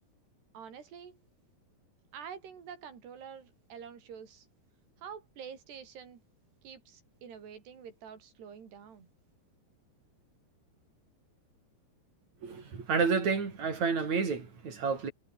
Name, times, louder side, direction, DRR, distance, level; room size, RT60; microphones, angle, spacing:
voice 1, 0.5-1.2 2.1-4.5 5.0-6.2 6.6-9.1, right 7 dB, 80° right, 6.3 m, -47 dB
voice 2, 12.4-15.1, right 5 dB, 45° right, 5.7 m, -30 dB
omnidirectional pair, 4.7 m